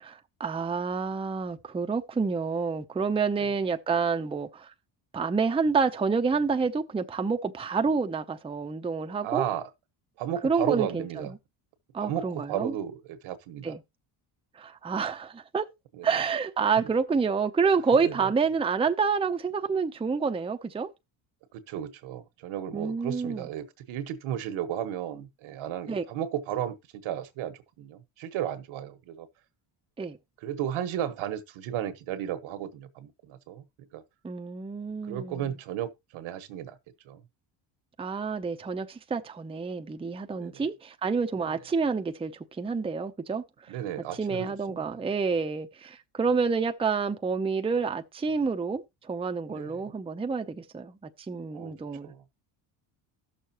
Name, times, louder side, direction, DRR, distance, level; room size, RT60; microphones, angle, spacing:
voice 1, 0.0-4.7 5.1-9.5 10.4-11.3 11.9-12.7 13.6-13.8 14.5-15.7 16.0-20.9 22.7-23.5 25.9-26.0 30.0-30.2 34.2-35.5 38.0-42.3 42.6-43.4 44.2-52.1, right 5 dB, 10° right, 0.6 m, -28 dB
voice 2, 9.2-9.7 10.2-11.3 12.0-13.7 15.9-16.0 16.8-16.9 18.0-18.3 21.5-29.3 30.4-33.6 33.9-34.0 35.0-36.8 37.0-37.2 40.4-40.6 41.3-41.5 43.7-45.0 49.5-49.8 51.5-51.7 52.0-52.2, right 10 dB, 75° right, 1.4 m, -34 dB
15.0 x 6.6 x 2.9 m
cardioid pair, 105°, 48 cm